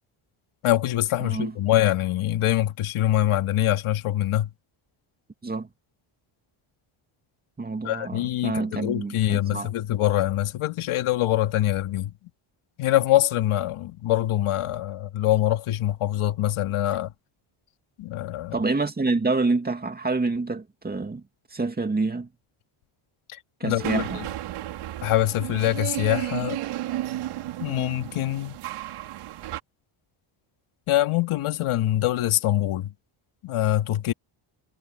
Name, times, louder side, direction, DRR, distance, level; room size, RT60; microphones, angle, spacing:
voice 1, 0.6-4.5 7.8-12.1 12.8-17.1 18.0-18.6 23.3-24.2 25.0-26.6 27.6-28.6 30.9-32.9 33.4-34.1, left 13 dB, 80° left, 2.4 m, -24 dB
voice 2, 1.2-1.5 5.4-5.7 7.6-9.7 18.5-21.2 21.5-22.3 23.6-24.2, right 3 dB, 20° right, 2.5 m, -27 dB
sound 1, 23.8-29.6, right 14 dB, 90° right, 4.2 m, -33 dB
cardioid pair, 125°, 50 cm